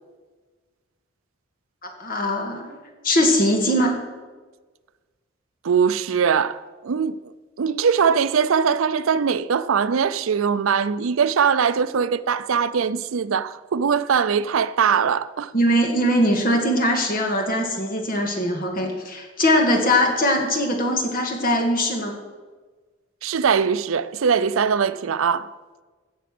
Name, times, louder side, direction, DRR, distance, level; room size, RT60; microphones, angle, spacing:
voice 1, 1.8-2.8 3.0-4.0 15.5-22.2, equal, 45° left, 1.9 m, -21 dB
voice 2, 5.6-7.2 7.6-15.5 23.2-25.5, right 6 dB, 80° right, 0.5 m, -21 dB
16.0 x 6.0 x 6.1 m
head